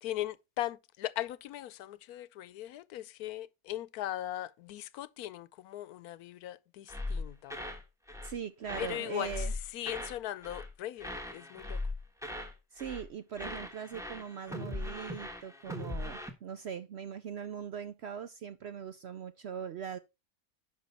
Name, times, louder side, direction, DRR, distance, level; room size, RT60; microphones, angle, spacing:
voice 1, 0.0-7.6 8.8-11.8, left 13 dB, 80° left, 1.1 m, -39 dB
sound 1, 6.9-8.4 8.6-10.2 10.4-10.7 11.0-12.5 12.8-13.1 13.4-16.3, left 2 dB, ahead, 1.2 m, -39 dB
voice 2, 8.2-9.5 12.7-20.0, right 8 dB, 65° right, 0.7 m, -41 dB
10.5 x 5.3 x 4.2 m
omnidirectional pair, 1.6 m